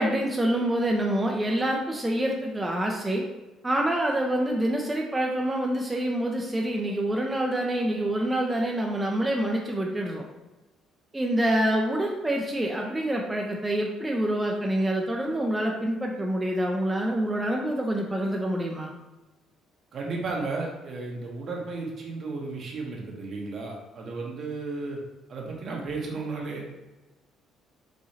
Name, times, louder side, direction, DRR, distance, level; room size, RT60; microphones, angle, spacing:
voice 1, 0.0-3.2 3.6-10.2 11.1-18.9, right 1 dB, 15° right, -1 dB, 0.5 m, -26 dB
voice 2, 19.9-25.0 25.3-26.7, right 3 dB, 55° right, -1 dB, 1.0 m, -34 dB
4.9 x 2.7 x 2.7 m, 1.1 s
supercardioid pair, 75°, 0 cm